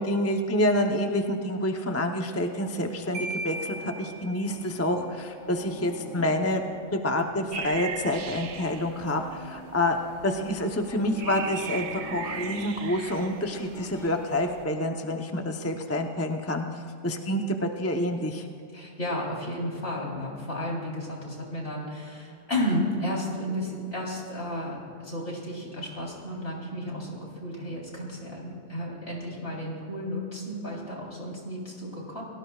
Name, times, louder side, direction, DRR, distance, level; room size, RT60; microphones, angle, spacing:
voice 1, 0.0-6.6 6.9-10.0 10.2-18.5, left 1 dB, 15° left, 3 dB, 0.8 m, -28 dB
sound 1, 2.4-12.7 13.0-14.5, left 2 dB, 90° left, 3.0 m, -45 dB
Marimba xylophone, 3.1-4.9, right 1 dB, 20° right, 3.4 m, -37 dB
sound 2, 7.5-14.6, right 7 dB, 70° right, 1.0 m, -39 dB
voice 2, 18.7-32.2, left 1 dB, 60° left, -3 dB, 4.0 m, -33 dB
29.5 x 18.0 x 2.4 m, 2.6 s
omnidirectional pair, 1.2 m